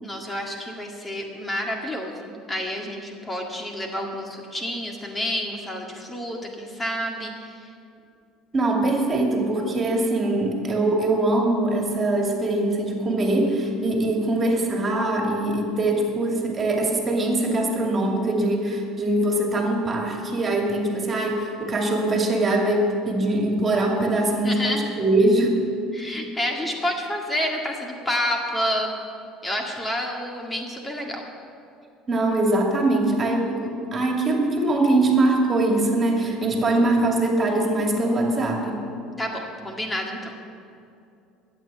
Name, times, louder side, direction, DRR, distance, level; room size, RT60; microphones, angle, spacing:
voice 1, 0.0-7.6 24.4-24.9 25.9-28.9 29.4-31.2 39.2-40.3, equal, 15° left, 1 dB, 1.9 m, -29 dB
voice 2, 8.5-25.6 32.1-38.8, right 2 dB, 35° right, 1 dB, 2.4 m, -22 dB
12.5 x 8.9 x 7.4 m, 2.5 s
supercardioid pair, 80°, 0 cm